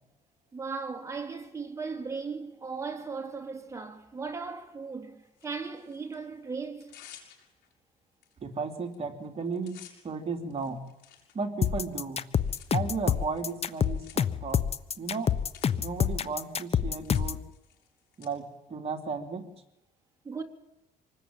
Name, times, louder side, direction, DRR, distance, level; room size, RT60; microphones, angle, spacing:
voice 1, 0.5-7.0 20.2-20.4, right 4 dB, 15° right, 3.5 m, -37 dB
Tearing, 5.3-6.2 6.6-7.7 8.2-8.3 8.6-9.0 9.2-18.3, left 10 dB, 85° left, 6.5 m, -56 dB
voice 2, 8.4-9.8 10.0-10.8 11.3-12.2 12.7-14.6 15.0-15.3 15.8-17.4 18.2-19.4, right 4 dB, 35° right, 3.7 m, -34 dB
sound 1, 11.6-17.4, left 8 dB, 35° left, 1.1 m, -27 dB
26.0 x 20.0 x 9.2 m
cardioid pair, 110°, 17 cm